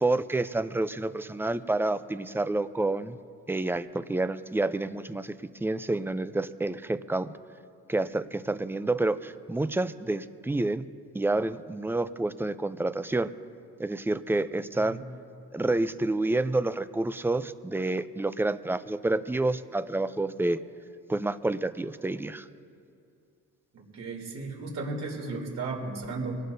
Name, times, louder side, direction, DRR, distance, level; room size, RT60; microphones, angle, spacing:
voice 1, 0.0-3.2 3.5-5.3 5.6-7.3 7.9-10.8 11.1-13.3 13.8-15.0 15.5-20.6 21.1-22.5, right 2 dB, 5° right, 13 dB, 0.4 m, -28 dB
voice 2, 23.7-26.4, right 3 dB, 60° right, -1 dB, 3.2 m, -35 dB
24.0 x 18.0 x 2.7 m, 2.4 s
cardioid pair, 90°, 30 cm